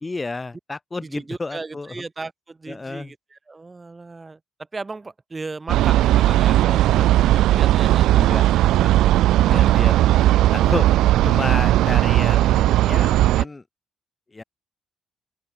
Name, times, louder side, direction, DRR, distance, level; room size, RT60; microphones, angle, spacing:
voice 1, 0.0-1.9 2.7-3.1 6.6-6.7 8.2-8.4 8.8-9.2 9.5-9.9 10.5-10.9 11.2-13.6 14.3-14.4, left 3 dB, 20° left, 2.0 m, -31 dB
voice 2, 1.0-4.4 4.7-7.2 7.5-8.3 9.5-9.9 10.5-10.9, right 3 dB, 25° right, 4.2 m, -36 dB
sound 1, 5.7-13.4, right 14 dB, 85° right, 0.3 m, -17 dB
open air
cardioid pair, 90°, 0 cm